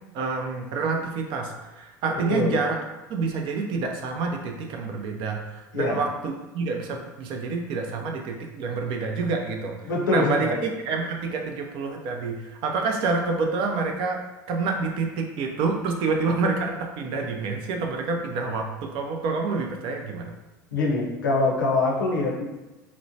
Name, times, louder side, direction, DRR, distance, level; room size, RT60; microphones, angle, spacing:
voice 1, 0.1-2.8 3.1-10.5 10.9-14.2 14.5-20.3, right 4 dB, 55° right, 3 dB, 0.5 m, -28 dB
voice 2, 2.1-2.6 5.7-6.0 9.8-10.6 20.7-22.4, left 2 dB, 85° left, -2 dB, 0.6 m, -24 dB
2.9 x 2.1 x 2.6 m, 1.1 s
hypercardioid pair, 75°, 10 cm